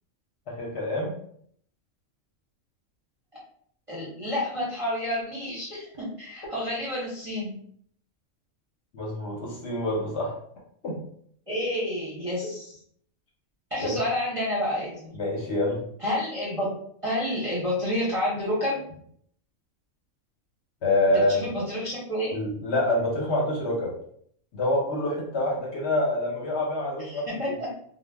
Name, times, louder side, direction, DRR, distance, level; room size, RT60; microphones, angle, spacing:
voice 1, 0.5-1.2 8.9-10.3 10.8-11.0 13.8-14.0 15.1-15.8 20.8-21.5 22.3-23.9 24.5-27.5, left 1 dB, 60° left, -3 dB, 0.9 m, -26 dB
voice 2, 3.9-7.5 11.5-12.8 13.7-15.1 16.0-16.8 17.0-18.8 21.1-22.4 27.0-27.7, left 1 dB, 35° right, -7 dB, 0.6 m, -29 dB
2.2 x 2.1 x 3.3 m, 0.64 s
omnidirectional pair, 1.4 m